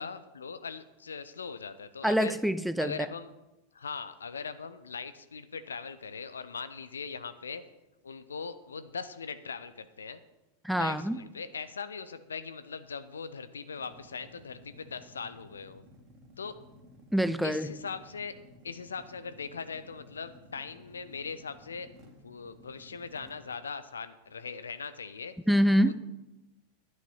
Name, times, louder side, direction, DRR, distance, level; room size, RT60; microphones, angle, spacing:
voice 1, 0.0-2.4 2.8-3.3 3.7-7.6 8.0-10.2 10.8-15.8 16.4-16.5 17.4-18.3 18.6-25.3 25.8-26.0, left 5 dB, 70° left, 12 dB, 0.8 m, -40 dB
voice 2, 2.0-2.9 10.6-11.2 17.1-17.7 25.5-26.0, equal, ahead, 14 dB, 0.5 m, -25 dB
sound 1, 13.8-23.5, left 1 dB, 30° right, 2.4 m, -56 dB
11.5 x 9.8 x 5.6 m, 1.0 s
figure-of-eight pair, 90°, 0 cm